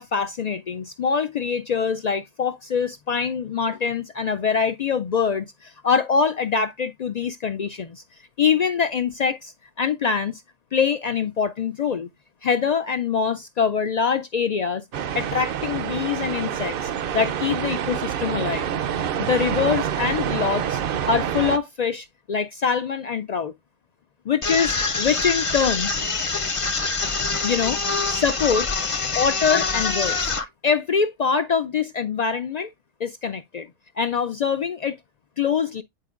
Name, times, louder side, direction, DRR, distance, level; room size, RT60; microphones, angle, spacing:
voice 1, 0.0-8.0 8.4-10.4 10.7-12.1 12.4-14.8 15.1-18.7 19.1-20.8 21.1-23.5 24.3-25.9 27.4-27.8 28.1-28.7 29.1-30.3 30.6-32.7 33.0-33.7 34.0-35.0 35.4-35.8, left 6 dB, 70° left, 0.4 m, -24 dB
sound 1, 14.9-21.6, right 9 dB, 60° right, 0.7 m, -27 dB
sound 2, 24.4-30.4, left 4 dB, 35° left, 0.7 m, -25 dB
10.0 x 4.5 x 2.3 m
omnidirectional pair, 1.2 m